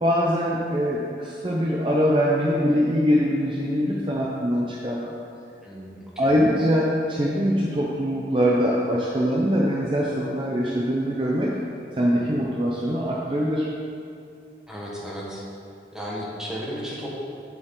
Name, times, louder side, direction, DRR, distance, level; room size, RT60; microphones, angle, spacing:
voice 1, 0.0-5.1 6.2-11.5 12.0-13.7, equal, 30° right, -4 dB, 0.7 m, -23 dB
voice 2, 5.6-6.3 14.7-15.4 15.9-17.1, equal, 5° right, -5 dB, 1.4 m, -34 dB
8.3 x 7.8 x 3.8 m, 2.4 s
head